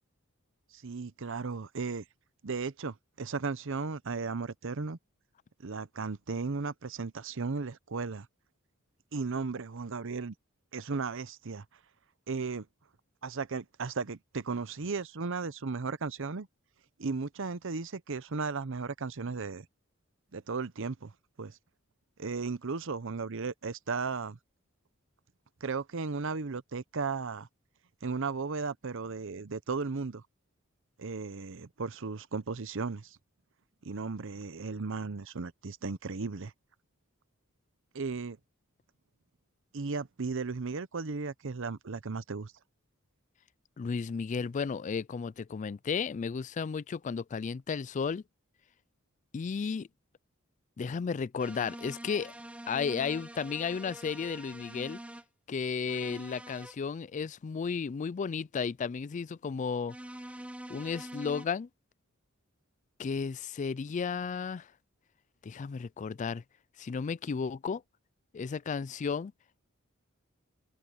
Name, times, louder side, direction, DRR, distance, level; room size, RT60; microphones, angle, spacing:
voice 1, 0.7-2.0 2.4-5.0 5.6-8.3 9.1-10.3 10.7-11.6 12.3-12.7 13.2-16.5 17.0-19.7 20.3-21.1 21.4-21.6 22.2-24.4 25.6-27.5 28.0-30.2 31.0-33.2 33.8-36.5 37.9-38.4 39.7-42.5, right 4 dB, 65° right, 0.8 m, -35 dB
voice 2, 43.8-48.2 49.3-49.9 50.8-52.3 52.7-55.0 55.5-60.0 60.7-61.7 63.0-64.7 65.4-66.4 66.8-67.8 68.3-69.3, left 5 dB, 35° left, 0.3 m, -33 dB
sound 1, 51.4-55.2 55.9-56.8 59.9-61.5, right 1 dB, 5° right, 0.7 m, -45 dB
open air
head